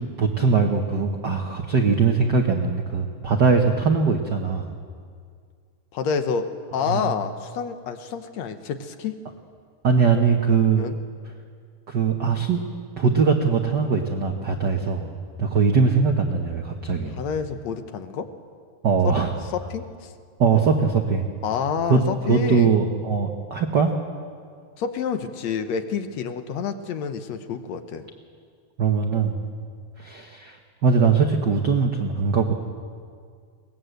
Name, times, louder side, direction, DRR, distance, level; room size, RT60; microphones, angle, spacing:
voice 1, 0.2-4.7 6.9-7.0 9.8-10.9 11.9-12.6 13.0-15.1 15.4-17.1 18.8-19.3 20.4-21.3 21.9-22.0 22.3-23.9 28.8-29.4 30.0-30.6 30.8-32.5, right 5 dB, 65° right, 3 dB, 1.0 m, -21 dB
voice 2, 5.9-9.2 10.8-11.0 17.2-18.3 19.0-19.1 19.5-20.1 21.4-22.8 24.8-28.1, left 6 dB, 65° left, 8 dB, 2.1 m, -28 dB
21.5 x 19.0 x 7.9 m, 2.1 s
omnidirectional pair, 3.7 m